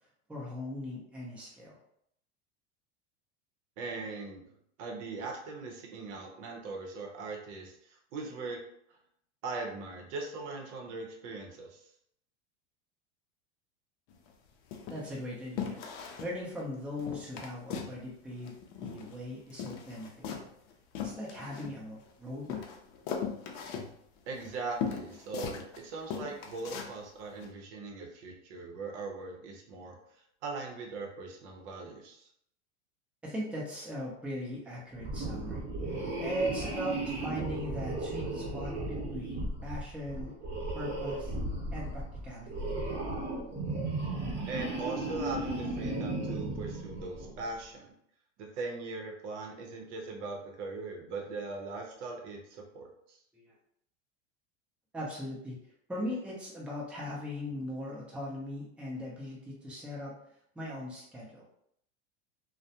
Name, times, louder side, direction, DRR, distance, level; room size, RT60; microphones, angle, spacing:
voice 1, 0.3-1.8 14.9-15.8 16.2-20.5 21.0-22.7 33.2-35.6 36.2-40.3 40.7-41.3 41.7-42.7 53.3-53.5 54.9-55.6 55.9-60.1 60.5-61.4, left 1 dB, 5° right, -5 dB, 0.6 m, -39 dB
voice 2, 3.8-4.5 4.8-8.6 8.9-9.0 9.4-11.9 24.3-32.3 44.5-47.9 48.4-53.2, right 3 dB, 70° right, 1 dB, 0.8 m, -40 dB
sound 1, 14.1-14.3 14.7-15.2 15.6-16.3 16.6-16.7 17.0-18.0 18.2-19.2 19.5-22.1 22.5-25.8 26.1-26.9 27.4-27.5, left 7 dB, 60° left, 0.5 m, -39 dB
sound 2, 35.0-47.4, right 2 dB, 30° right, 0.9 m, -35 dB
2.3 x 2.1 x 2.8 m, 0.72 s
hypercardioid pair, 110°, 36 cm